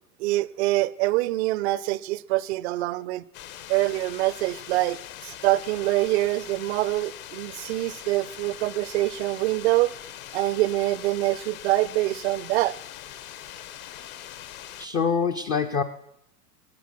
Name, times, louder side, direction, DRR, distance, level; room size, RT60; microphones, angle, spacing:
voice 1, 0.2-3.2 3.7-9.9 10.3-12.8, right 18 dB, 45° right, 0.5 m, -25 dB
sound 1, 3.3-14.9, left 11 dB, 60° left, 1.1 m, -42 dB
voice 2, 14.8-15.8, left 6 dB, 20° left, 0.4 m, -25 dB
14.0 x 9.2 x 6.0 m
hypercardioid pair, 95°, 47 cm